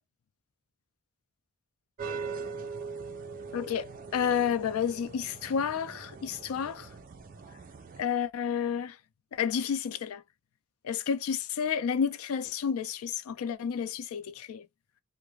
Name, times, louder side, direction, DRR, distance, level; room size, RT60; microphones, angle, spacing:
sound 1, 2.0-8.0, right 5 dB, 40° right, 0.4 m, -41 dB
voice 1, 3.5-6.9 8.0-9.0 9.3-10.2 10.8-14.7, left 7 dB, 85° left, 0.3 m, -30 dB
2.4 x 2.1 x 3.0 m
head